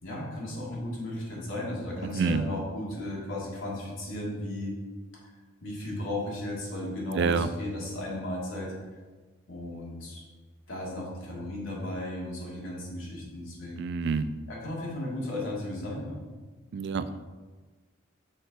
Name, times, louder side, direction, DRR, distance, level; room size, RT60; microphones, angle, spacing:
voice 1, 0.0-4.7 5.6-8.7 9.5-10.2 10.7-13.8 14.5-16.2, left 1 dB, 85° left, -4 dB, 2.1 m, -35 dB
voice 2, 2.1-2.5 7.1-7.5 13.8-14.3 16.7-17.1, right 5 dB, 60° right, 12 dB, 0.3 m, -27 dB
6.3 x 4.4 x 4.6 m, 1.3 s
head